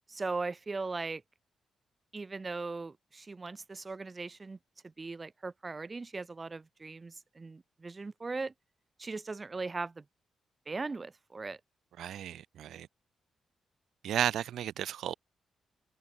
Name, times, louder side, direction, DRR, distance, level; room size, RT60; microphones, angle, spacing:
voice 1, 0.1-1.2 2.1-4.6 4.8-8.5 9.0-10.0 10.7-11.6, right 3 dB, 30° right, 7.9 m, -39 dB
voice 2, 12.0-12.9 14.0-15.1, right 11 dB, 80° right, 1.2 m, -33 dB
cardioid pair, 85°, 0 cm